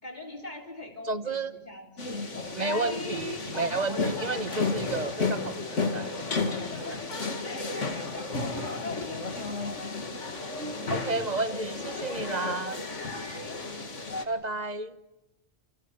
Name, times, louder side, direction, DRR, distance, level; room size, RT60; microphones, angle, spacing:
voice 1, 0.0-2.8 6.7-10.0 12.7-13.6, left 2 dB, 40° left, 1 dB, 4.4 m, -43 dB
voice 2, 1.0-1.5 2.6-6.1 10.9-12.8 14.2-15.0, right 3 dB, 40° right, 11 dB, 1.1 m, -31 dB
sound 1, 2.0-14.2, left 3 dB, 85° left, 2.6 m, -33 dB
29.5 x 26.0 x 7.4 m, 1.0 s
omnidirectional pair, 1.2 m